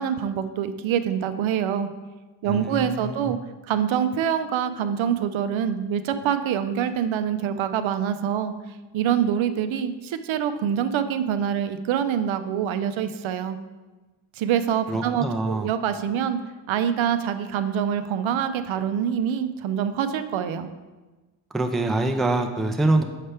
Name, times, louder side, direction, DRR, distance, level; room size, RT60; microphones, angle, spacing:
voice 1, 0.0-1.9 2.4-3.4 3.7-8.5 8.9-13.6 14.4-16.4 16.7-20.7, right 8 dB, 75° right, 9 dB, 0.5 m, -25 dB
voice 2, 2.5-3.3 14.9-15.7 21.5-23.0, right 2 dB, ahead, 4 dB, 0.4 m, -25 dB
6.6 x 4.3 x 3.3 m, 1.2 s
cardioid pair, 70°, 48 cm